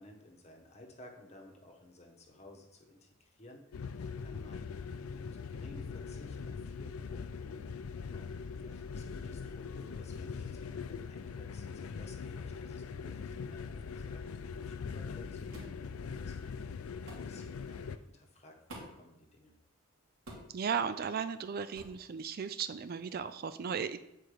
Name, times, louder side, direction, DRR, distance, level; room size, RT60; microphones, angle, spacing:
voice 1, 0.0-4.7 5.1-7.7 8.1-8.3 8.6-19.5, left 1 dB, 30° left, 2 dB, 1.2 m, -56 dB
sound 1, 3.7-18.0, left 5 dB, 80° left, 0.4 m, -42 dB
sound 2, 15.5-15.8 17.1-17.3 18.7-19.1 20.3-20.6 21.7-22.0, right 1 dB, 80° right, 2.6 m, -48 dB
voice 2, 20.5-24.0, right 6 dB, 45° right, 11 dB, 0.4 m, -36 dB
8.3 x 4.5 x 4.9 m, 0.82 s
head